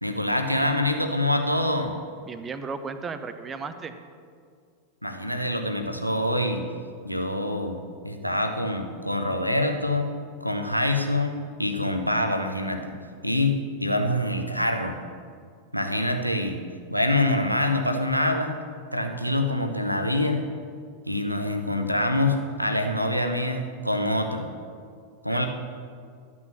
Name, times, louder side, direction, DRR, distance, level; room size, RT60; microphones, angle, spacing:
voice 1, 0.0-1.9 5.0-6.6 7.0-7.8 8.0-10.1 10.4-12.8 13.2-15.0 15.7-16.6 16.9-18.5 18.9-20.4 21.1-24.5 25.2-25.5, left 1 dB, 90° right, 5 dB, 0.8 m, -25 dB
voice 2, 2.2-3.9 25.3-25.5, right 5 dB, 20° right, 10 dB, 0.8 m, -35 dB
12.0 x 6.1 x 7.2 m, 2.1 s
figure-of-eight pair, 90°, 0 cm